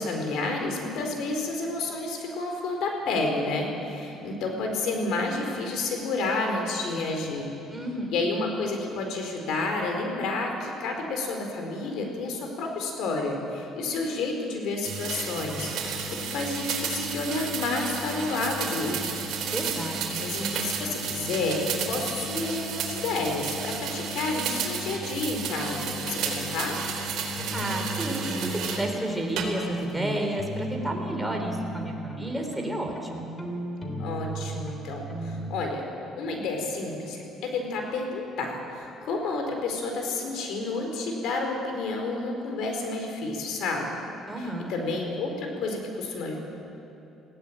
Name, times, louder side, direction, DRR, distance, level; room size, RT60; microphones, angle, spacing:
voice 1, 0.0-7.5 8.1-19.2 20.2-26.8 34.0-35.8 36.2-43.9 44.4-46.4, left 3 dB, 75° left, 3 dB, 4.3 m, -30 dB
voice 2, 7.7-8.1 19.5-20.2 27.5-33.3 44.3-44.7, right 1 dB, 5° right, 1 dB, 3.5 m, -31 dB
sound 1, 14.8-28.9 29.4-29.9, right 5 dB, 65° right, 3.9 m, -32 dB
sound 2, 27.4-35.5, right 1 dB, 25° left, 3.3 m, -35 dB
20.5 x 16.5 x 8.9 m, 2.9 s
cardioid pair, 120°, 0 cm